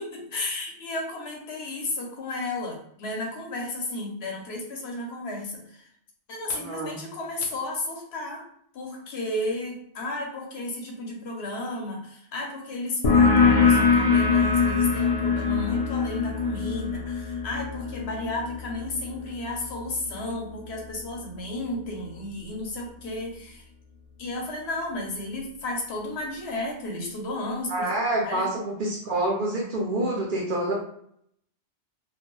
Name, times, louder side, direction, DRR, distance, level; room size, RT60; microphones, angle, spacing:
voice 1, 0.0-5.9 6.3-8.4 8.7-23.6 24.2-27.9 28.2-28.5, left 2 dB, 65° left, 0 dB, 0.9 m, -33 dB
voice 2, 6.5-7.0 27.7-30.7, right 1 dB, 55° right, -2 dB, 0.6 m, -27 dB
sound 1, 13.0-20.3, left 5 dB, 45° left, 0.5 m, -23 dB
2.3 x 2.1 x 3.0 m, 0.69 s
omnidirectional pair, 1.2 m